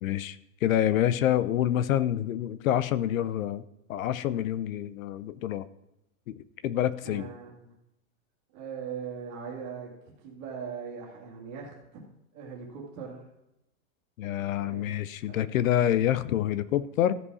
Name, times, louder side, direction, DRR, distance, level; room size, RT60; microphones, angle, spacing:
voice 1, 0.0-3.6 3.9-5.6 6.3-7.3 14.2-17.2, left 11 dB, 70° left, 16 dB, 0.6 m, -27 dB
voice 2, 7.0-7.7 8.5-9.9 10.2-11.8 12.3-13.2 14.6-14.8 15.3-15.5, right 6 dB, 30° right, -2 dB, 2.2 m, -40 dB
14.5 x 5.1 x 4.8 m, 0.88 s
supercardioid pair, 175°, 42 cm